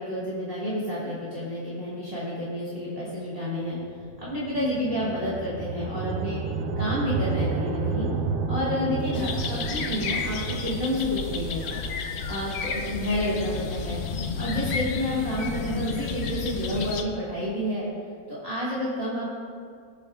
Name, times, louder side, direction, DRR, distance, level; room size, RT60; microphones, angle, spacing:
voice 1, 0.0-3.8 4.2-6.4 6.8-8.1 8.5-14.0 14.4-17.9 18.3-19.3, left 1 dB, 25° right, -8 dB, 1.7 m, -30 dB
sound 1, 3.8-14.1, right 4 dB, 50° right, 0.7 m, -32 dB
sound 2, 9.1-17.0, left 5 dB, 55° left, 0.7 m, -31 dB
19.0 x 7.2 x 2.4 m, 2.1 s
omnidirectional pair, 1.7 m